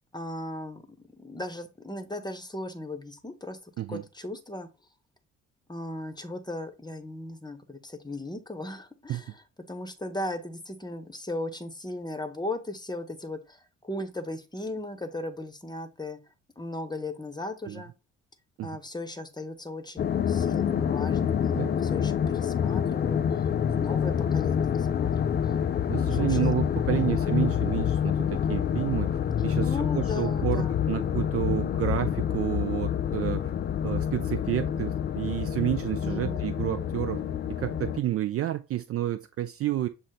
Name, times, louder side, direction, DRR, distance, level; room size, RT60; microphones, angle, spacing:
voice 1, 0.1-0.8 1.2-3.6 3.9-4.7 5.7-9.4 9.7-16.2 16.6-17.9 18.6-25.3 26.1-26.5 26.9-27.3 29.6-30.7 36.0-36.6, left 2 dB, 10° left, 0.8 m, -37 dB
sound 1, 20.0-38.0, left 8 dB, 30° left, 0.4 m, -27 dB
voice 2, 25.9-29.2 29.4-33.5 33.8-37.2 37.5-39.9, right 13 dB, 40° right, 0.4 m, -30 dB
6.2 x 2.1 x 4.0 m
hypercardioid pair, 45°, 37 cm